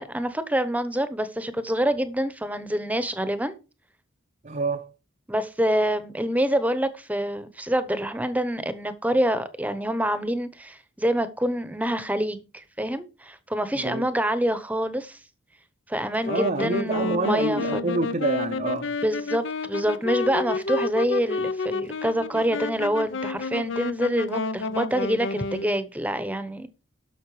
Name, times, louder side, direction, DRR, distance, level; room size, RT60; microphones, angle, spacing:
voice 1, 0.0-3.6 5.3-15.2 15.9-17.9 19.0-26.7, equal, 5° right, 0.9 m, -26 dB
voice 2, 4.4-4.9 13.7-14.1 16.3-18.9, right 2 dB, 35° right, 0.6 m, -27 dB
Wind instrument woodwind instrument, 16.1-25.8, left 3 dB, 60° left, 0.7 m, -30 dB
11.5 x 6.6 x 4.9 m
head